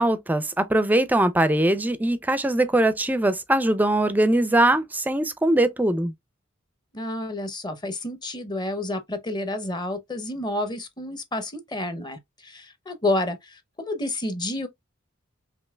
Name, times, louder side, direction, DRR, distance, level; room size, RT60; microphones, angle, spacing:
voice 1, 0.0-6.1, right 1 dB, 10° right, 0.4 m, -21 dB
voice 2, 6.9-14.7, left 1 dB, 20° left, 0.7 m, -30 dB
5.4 x 2.7 x 2.2 m
head